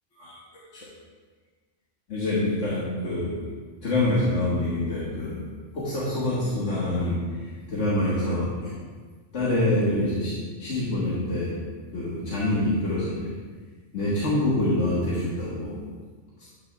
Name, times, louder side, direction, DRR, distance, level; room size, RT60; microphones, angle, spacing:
voice 1, 2.1-3.4 3.8-5.4 5.7-8.8 9.3-10.3 10.6-11.6 11.9-13.3 13.9-15.8, left 1 dB, 75° left, -8 dB, 1.7 m, -26 dB
9.0 x 8.8 x 2.3 m, 1.5 s
omnidirectional pair, 1.2 m